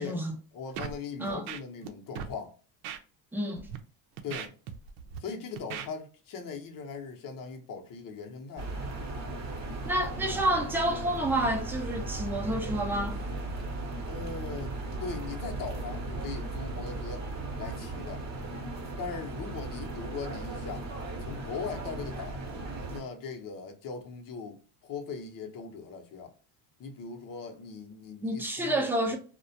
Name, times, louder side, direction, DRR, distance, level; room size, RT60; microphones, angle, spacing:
voice 1, 0.0-0.4 1.2-1.5 3.3-3.7 9.9-13.2 28.2-29.2, right 1 dB, 5° right, 0.5 m, -29 dB
voice 2, 0.5-2.6 4.2-4.5 5.2-8.7 14.0-17.2 17.6-18.2 19.0-20.9 21.2-22.4 22.9-26.3 26.8-29.2, left 5 dB, 45° left, 0.8 m, -40 dB
Scratching (performance technique), 0.8-1.0 1.3-1.9 2.2-2.3 2.8-3.0 3.6-3.8 4.2-5.2 5.6-5.9, right 8 dB, 75° right, 0.6 m, -38 dB
sound 1, 8.6-23.0, right 2 dB, 35° right, 0.8 m, -36 dB
2.3 x 2.1 x 2.7 m
supercardioid pair, 105°, 47 cm